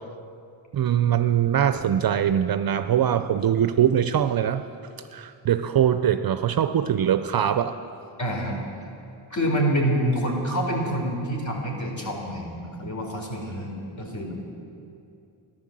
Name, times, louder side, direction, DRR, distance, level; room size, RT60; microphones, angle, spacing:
voice 1, 0.7-4.6 5.1-7.8, right 9 dB, 45° right, 11 dB, 0.5 m, -22 dB
voice 2, 8.2-8.6 9.3-14.4, equal, 35° left, 0 dB, 3.8 m, -27 dB
13.5 x 11.0 x 7.6 m, 2.6 s
cardioid pair, 70°, 49 cm